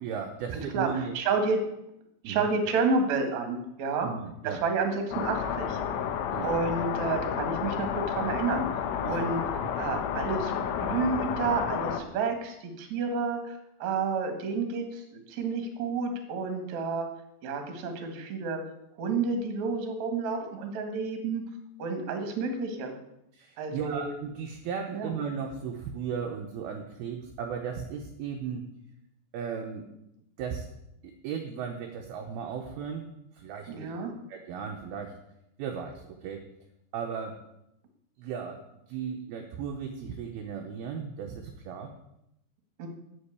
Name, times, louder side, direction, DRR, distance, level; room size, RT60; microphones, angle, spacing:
voice 1, 0.0-1.2 2.2-2.5 4.0-4.6 6.3-6.5 9.0-9.3 23.3-28.6 29.3-29.9 30.4-30.7 31.0-33.9 34.3-35.2 35.6-36.4 36.9-37.4 38.2-38.6 38.9-41.9, right 6 dB, 75° right, 3 dB, 2.3 m, -36 dB
voice 2, 0.5-0.9 1.1-1.6 2.2-4.1 4.4-5.8 6.4-8.7 9.1-9.4 9.8-10.5 10.8-17.0 17.4-18.6 19.0-21.4 21.8-22.9 23.6-24.1 24.9-25.1 33.7-34.1 42.8-42.9, right 4 dB, 55° right, 5 dB, 2.2 m, -30 dB
sound 1, 5.1-12.0, left 8 dB, 85° left, 3.4 m, -31 dB
8.6 x 7.8 x 8.2 m, 0.83 s
omnidirectional pair, 5.5 m